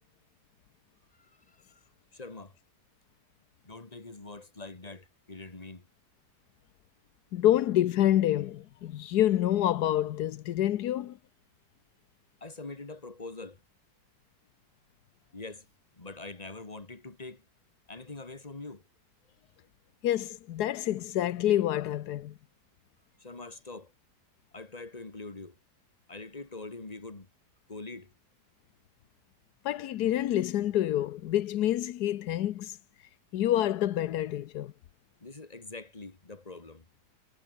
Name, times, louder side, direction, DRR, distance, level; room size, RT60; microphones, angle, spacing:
voice 1, 1.2-1.8 2.1-2.6 3.6-5.9 12.4-13.6 15.3-15.7 15.9-17.4 17.9-18.8 23.2-23.9 24.5-25.6 26.1-27.3 27.7-28.1 35.2-36.9, left 3 dB, 25° left, 2.5 m, -44 dB
voice 2, 7.3-11.2 20.0-22.3 29.6-32.8 33.3-34.7, left 12 dB, 85° left, 1.3 m, -27 dB
omnidirectional pair, 1.7 m